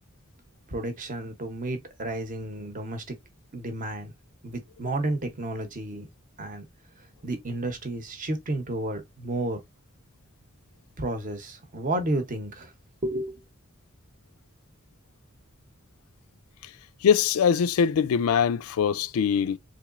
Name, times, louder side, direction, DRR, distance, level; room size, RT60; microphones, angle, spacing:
voice 1, 0.7-3.2 3.5-4.1 4.4-6.1 6.4-6.6 7.2-9.6 11.0-12.7 13.0-13.4, right 2 dB, 40° right, 0.8 m, -31 dB
voice 2, 17.0-19.6, left 7 dB, 90° left, 0.4 m, -22 dB
3.8 x 3.1 x 2.4 m
head